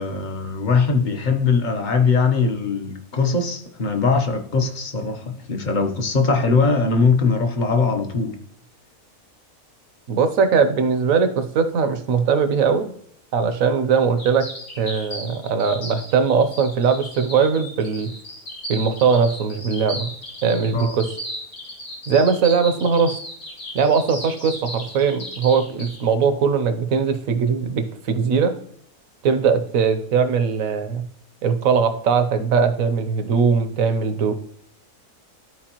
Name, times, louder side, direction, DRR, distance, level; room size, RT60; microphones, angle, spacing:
voice 1, 0.0-8.4 20.7-21.0, left 4 dB, 35° left, 5 dB, 0.9 m, -21 dB
voice 2, 10.1-12.9 13.3-14.5 14.8-18.1 18.7-20.1 20.4-21.1 22.1-23.1 23.7-28.6 29.2-31.1 31.4-34.3, right 5 dB, 65° right, 8 dB, 1.2 m, -20 dB
sound 1, 14.2-26.0, left 1 dB, 80° left, 2.7 m, -35 dB
13.0 x 4.6 x 2.9 m, 0.66 s
omnidirectional pair, 1.6 m